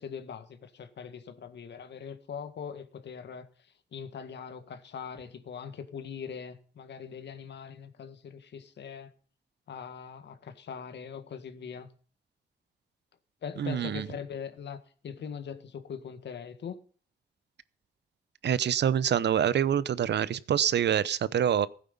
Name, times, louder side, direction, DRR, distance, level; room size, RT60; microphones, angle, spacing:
voice 1, 0.0-9.1 9.7-11.9 13.4-14.8 15.0-16.8, left 7 dB, 85° left, 1.8 m, -41 dB
voice 2, 13.6-14.1 18.4-21.7, right 9 dB, 80° right, 0.8 m, -26 dB
16.0 x 9.1 x 5.5 m
wide cardioid pair, 100°, 18 cm